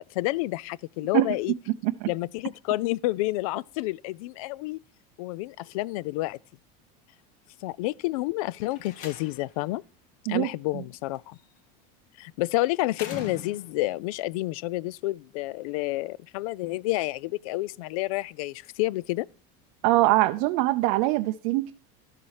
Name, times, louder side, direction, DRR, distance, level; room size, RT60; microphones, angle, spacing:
voice 1, 0.1-1.5 2.1-4.8 5.2-6.4 7.6-9.8 10.3-11.4 12.2-19.3, left 18 dB, 65° left, 0.4 m, -29 dB
Slam, 8.6-9.6 11.1-11.6 12.9-13.9, left 6 dB, 40° left, 1.3 m, -42 dB
voice 2, 10.3-10.8 19.8-21.7, right 17 dB, 45° right, 0.5 m, -23 dB
12.5 x 7.2 x 4.8 m
cardioid pair, 180°, 20 cm